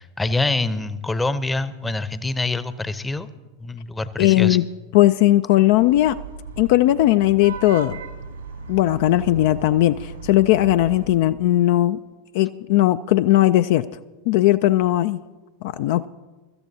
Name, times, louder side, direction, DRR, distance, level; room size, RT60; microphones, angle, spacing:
voice 1, 0.0-3.3 3.6-4.6, left 2 dB, 10° left, 14 dB, 0.7 m, -25 dB
voice 2, 4.2-4.6 4.9-6.2 6.6-8.0 8.7-12.0 12.3-13.8 14.3-15.2 15.6-16.0, left 15 dB, 60° left, 12 dB, 0.3 m, -18 dB
Vehicle horn car horn honking / Traffic noise roadway noise, 5.7-11.0, right 4 dB, 80° right, 1.9 m, -36 dB
23.5 x 13.5 x 2.7 m, 1.2 s
figure-of-eight pair, 90°, 0 cm